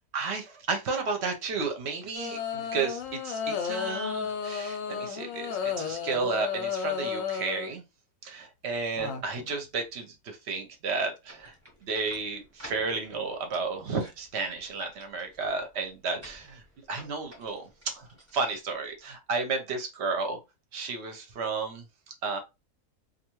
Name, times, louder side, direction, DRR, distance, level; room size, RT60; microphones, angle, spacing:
voice 1, 0.1-7.8 8.2-11.5 11.8-16.6 16.9-20.4 20.7-22.4, right 4 dB, 55° right, 0.8 m, -32 dB
sound 1, 2.2-7.7 9.0-9.5, left 7 dB, 70° left, 0.9 m, -33 dB
sound 2, 11.3-19.1, equal, 10° right, 0.8 m, -53 dB
2.6 x 2.4 x 2.9 m
omnidirectional pair, 1.6 m